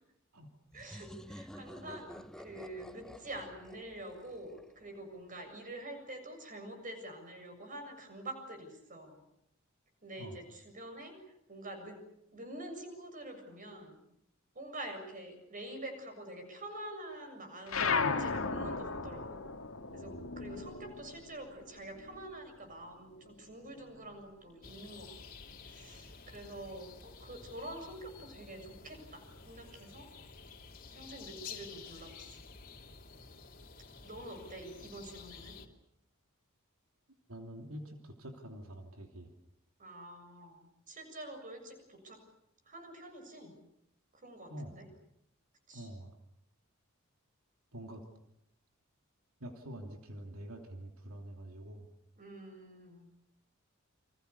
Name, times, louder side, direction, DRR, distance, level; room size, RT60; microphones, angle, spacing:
sound 1, 0.7-5.3, equal, 5° left, 1.0 m, -51 dB
voice 1, 0.7-2.1 2.4-9.2 10.0-12.0 12.3-14.0 14.5-19.4 19.9-25.4 25.7-30.1 30.9-32.4 34.0-35.6 39.8-42.2 42.7-43.5 44.2-44.8 45.7-45.9 52.2-53.1, right 1 dB, 40° right, 6 dB, 7.2 m, -47 dB
sound 2, 17.7-22.5 22.9-24.3, left 4 dB, 75° left, 2.2 m, -36 dB
sound 3, 24.6-35.7, left 5 dB, 45° left, 3.0 m, -51 dB
voice 2, 37.3-39.3 44.5-44.8 45.7-46.2 47.7-48.0 49.4-51.9, right 1 dB, 90° right, 3 dB, 3.0 m, -46 dB
29.5 x 26.0 x 6.9 m, 0.78 s
head